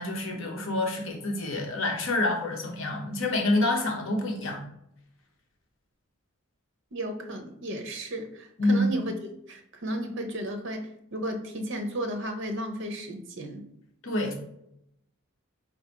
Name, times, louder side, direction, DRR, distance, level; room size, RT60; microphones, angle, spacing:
voice 1, 0.0-4.6 8.6-9.0 14.0-14.4, left 2 dB, 60° left, 1 dB, 1.0 m, -27 dB
voice 2, 6.9-9.1 9.5-13.6, right 1 dB, 55° right, 5 dB, 0.7 m, -34 dB
4.1 x 2.6 x 4.5 m, 0.78 s
head